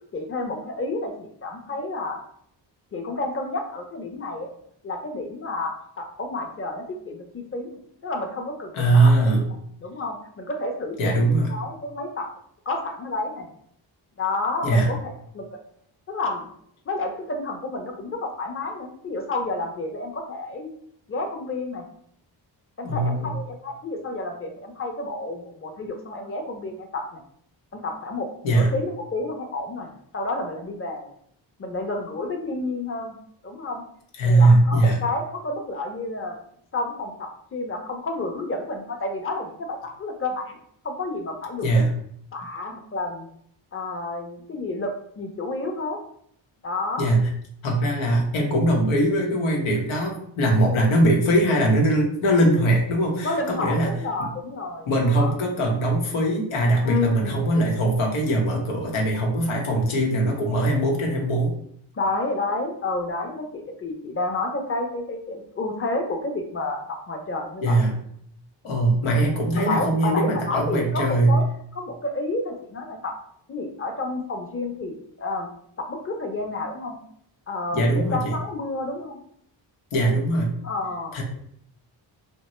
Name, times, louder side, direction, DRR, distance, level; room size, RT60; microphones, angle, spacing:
voice 1, 0.1-1.1 1.4-2.2 2.9-4.5 4.8-7.7 8.0-9.4 9.8-12.3 12.7-13.5 14.2-15.4 16.1-16.5 16.9-20.7 21.1-21.8 22.8-27.2 27.7-31.1 31.6-33.1 33.4-33.8 34.2-36.4 36.7-40.6 40.8-41.9 42.3-43.3 43.7-46.0 46.6-47.1 50.6-51.1 53.2-55.3 56.8-57.4 61.9-67.9 69.6-71.4 71.7-73.2 73.5-75.5 75.8-77.0 77.5-79.2 80.6-81.2, left 2 dB, 30° left, 3 dB, 0.6 m, -30 dB
voice 2, 8.7-9.4 11.0-11.5 14.6-14.9 22.8-23.3 28.4-28.7 34.2-35.0 41.6-41.9 47.0-47.3 47.6-53.9 54.2-54.3 54.9-61.5 67.6-68.0 68.6-71.4 77.7-78.3 79.9-80.5 81.1-81.2, right 1 dB, 85° left, 0 dB, 0.8 m, -21 dB
2.7 x 2.1 x 3.0 m, 0.68 s
cardioid pair, 55°, 47 cm